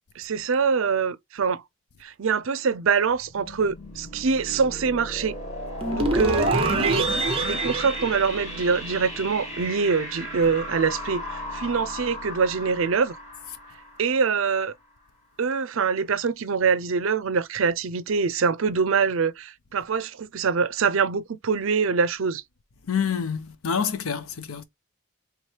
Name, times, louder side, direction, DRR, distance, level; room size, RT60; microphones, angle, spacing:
voice 1, 0.2-1.6 2.0-5.4 5.9-7.0 7.4-13.2 14.0-14.7 15.4-22.4, right 5 dB, 75° right, 0.5 m, -24 dB
sound 1, 3.0-14.7, left 1 dB, 35° left, 2.0 m, -36 dB
sound 2, 5.8-9.1, right 2 dB, 25° right, 0.8 m, -25 dB
voice 2, 22.9-24.6, left 6 dB, 90° left, 0.7 m, -27 dB
3.5 x 3.2 x 4.5 m
head